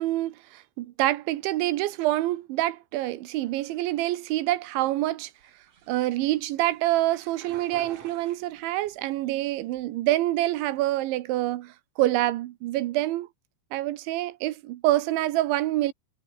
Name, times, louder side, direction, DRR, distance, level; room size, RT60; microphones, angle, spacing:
voice 1, 0.0-5.3 5.9-13.3 13.7-15.9, right 16 dB, 80° right, 3.4 m, -26 dB
sound 1, 5.3-9.0 9.5-10.1, right 7 dB, 45° right, 2.4 m, -49 dB
omnidirectional pair, 5.4 m